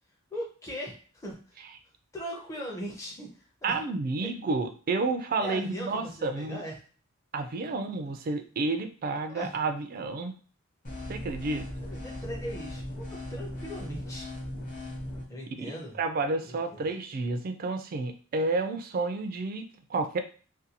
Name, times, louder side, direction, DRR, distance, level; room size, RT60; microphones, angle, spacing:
voice 1, 0.3-1.6 2.1-3.8 4.2-4.3 5.4-6.8 8.0-8.1 9.3-9.5 11.8-14.3 15.3-16.0 16.4-16.9, equal, 15° left, -3 dB, 0.5 m, -39 dB
voice 2, 3.6-6.6 7.3-10.4 11.1-11.7 15.6-15.7 16.0-20.2, right 3 dB, 40° right, 8 dB, 0.3 m, -30 dB
sound 1, 10.8-15.2, left 1 dB, 35° left, 0.8 m, -38 dB
2.5 x 2.2 x 2.8 m, 0.39 s
head